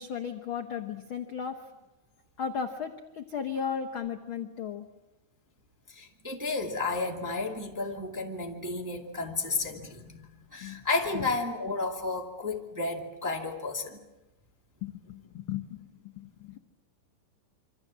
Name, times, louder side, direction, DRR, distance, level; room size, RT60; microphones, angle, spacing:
voice 1, 0.0-1.6 2.4-4.8 10.6-10.8 11.1-11.3 14.8-16.6, left 7 dB, 65° left, 5 dB, 1.3 m, -35 dB
voice 2, 5.9-10.2 10.5-14.0, left 3 dB, 5° right, 1 dB, 1.4 m, -32 dB
26.5 x 25.5 x 7.5 m, 1.0 s
omnidirectional pair, 4.1 m